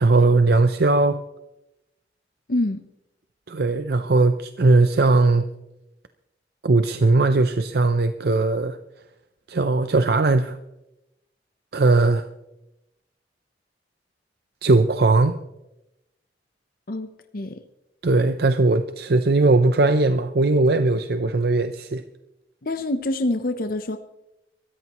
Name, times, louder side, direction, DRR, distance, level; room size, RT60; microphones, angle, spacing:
voice 1, 0.0-1.2 3.5-5.4 6.6-8.8 9.5-10.6 11.7-12.3 14.6-15.4 18.0-22.0, right 3 dB, 60° right, 9 dB, 0.6 m, -19 dB
voice 2, 2.5-2.8 16.9-17.1 17.3-17.6 22.6-24.0, left 1 dB, 55° left, 8 dB, 0.8 m, -25 dB
23.5 x 14.0 x 3.0 m, 0.91 s
head